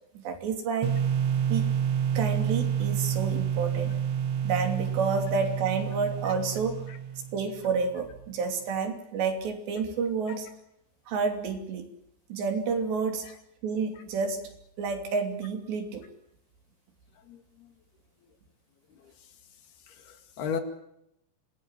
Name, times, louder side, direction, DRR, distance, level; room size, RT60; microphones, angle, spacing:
voice 1, 0.2-0.9 1.5-1.7 2.2-3.9 4.4-6.8 7.3-10.5 11.1-11.9 12.3-13.3 13.6-14.4 14.8-16.1, right 5 dB, 85° right, 5 dB, 5.2 m, -29 dB
sound 1, 0.8-7.6, right 8 dB, 60° right, 1.7 m, -29 dB
voice 2, 19.9-20.6, left 6 dB, 70° left, 7 dB, 4.1 m, -35 dB
26.5 x 19.5 x 7.5 m, 0.78 s
omnidirectional pair, 4.8 m